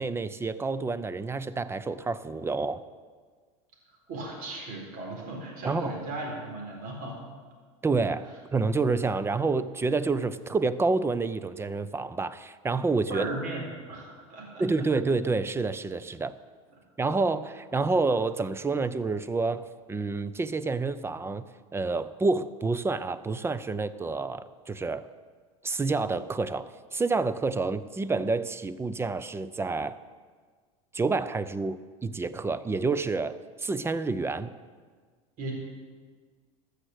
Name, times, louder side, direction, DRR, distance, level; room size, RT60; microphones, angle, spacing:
voice 1, 0.0-2.8 5.6-6.0 7.8-13.3 14.6-16.4 17.0-21.5 21.7-25.1 25.6-30.0 30.9-34.5, right 3 dB, 15° right, 15 dB, 0.5 m, -28 dB
voice 2, 4.1-7.2 13.1-14.6 35.4-35.5, right 2 dB, 50° right, -1 dB, 4.2 m, -36 dB
13.5 x 6.6 x 7.9 m, 1.5 s
supercardioid pair, 100°, 18 cm